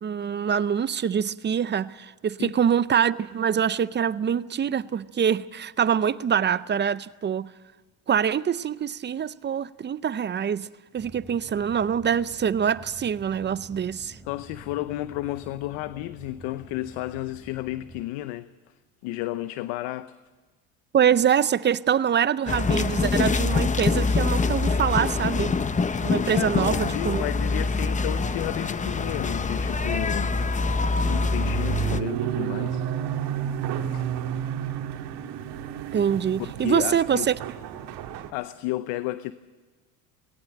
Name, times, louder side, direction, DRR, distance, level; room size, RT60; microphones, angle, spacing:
voice 1, 0.0-7.5 8.1-10.7 10.9-14.2 20.9-25.6 26.0-27.2 35.9-37.4, right 8 dB, 25° right, 0.5 m, -24 dB
sound 1, 11.0-18.0, right 2 dB, 5° right, 3.7 m, -47 dB
voice 2, 14.3-18.7 19.0-20.2 26.3-30.4 31.0-32.8 33.9-34.0 36.4-37.3 38.3-39.3, left 16 dB, 75° left, 0.8 m, -32 dB
sound 2, 22.5-32.0, left 4 dB, 15° left, 0.7 m, -25 dB
sound 3, 28.8-38.3, right 9 dB, 65° right, 2.0 m, -32 dB
18.5 x 18.0 x 8.8 m
supercardioid pair, 100°, 42 cm